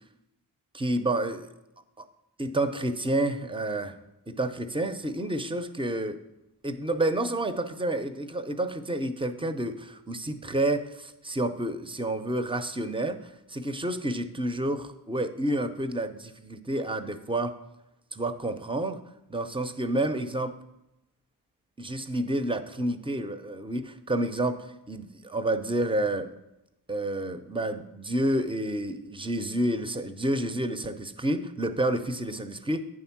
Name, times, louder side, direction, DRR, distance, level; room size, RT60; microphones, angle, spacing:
voice 1, 0.7-1.5 2.0-2.1 2.4-3.9 4.3-6.2 6.6-17.5 18.1-19.0 19.3-20.5 21.8-26.3 26.9-32.8, right 1 dB, 15° right, 9 dB, 0.7 m, -29 dB
8.9 x 3.6 x 5.9 m, 0.91 s
cardioid pair, 45°, 41 cm